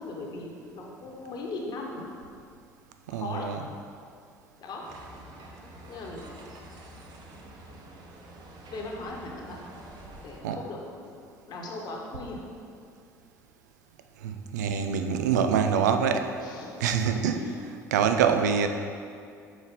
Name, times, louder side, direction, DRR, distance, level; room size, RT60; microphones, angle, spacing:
voice 1, 0.0-2.1 3.1-3.5 4.6-4.8 5.6-6.4 8.7-9.6 10.2-11.2 11.5-12.4 16.4-16.9 17.3-17.6, left 2 dB, 50° left, -1 dB, 1.2 m, -39 dB
voice 2, 3.1-3.6 10.4-10.6 14.2-16.3 16.8-17.5 17.9-18.7, right 7 dB, 75° right, 6 dB, 0.4 m, -25 dB
sound 1, 4.8-10.4, right 1 dB, 50° right, 0.9 m, -47 dB
6.3 x 4.7 x 3.7 m, 2.4 s
hypercardioid pair, 60°, 9 cm